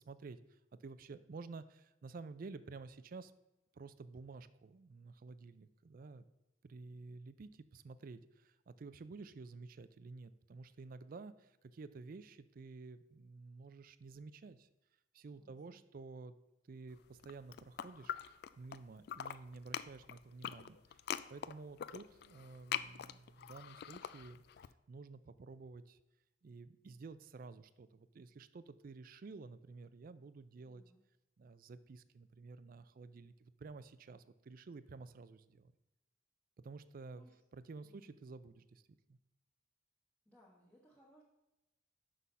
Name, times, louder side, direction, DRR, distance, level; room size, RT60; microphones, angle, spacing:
voice 1, 0.0-3.3 3.7-6.2 6.6-14.7 15.1-16.4 16.6-18.1 18.6-21.0 21.3-26.0 26.4-30.8 31.4-35.7 36.6-37.3 37.5-39.2, right 4 dB, 50° right, 15 dB, 0.4 m, -52 dB
voice 2, 15.2-15.8 30.6-31.0 37.2-37.4 37.8-38.1 40.2-41.2, equal, 10° left, -6 dB, 1.2 m, -66 dB
sound 1, 17.1-18.8 19.0-24.7, left 9 dB, 60° left, 0.3 m, -43 dB
6.2 x 5.5 x 5.4 m, 0.94 s
head